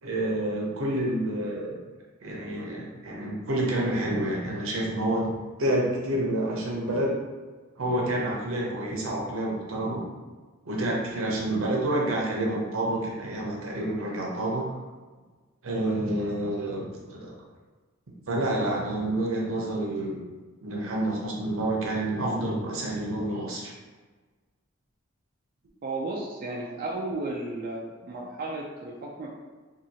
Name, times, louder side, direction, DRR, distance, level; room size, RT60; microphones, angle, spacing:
voice 1, 0.0-1.8 2.2-5.3 5.6-7.1 7.8-10.1 10.6-14.7 15.6-17.3 18.3-20.2 20.6-23.7, right 1 dB, 80° right, -2 dB, 0.7 m, -28 dB
voice 2, 25.8-29.3, right 2 dB, 45° right, -3 dB, 0.3 m, -34 dB
2.8 x 2.7 x 2.8 m, 1.3 s
head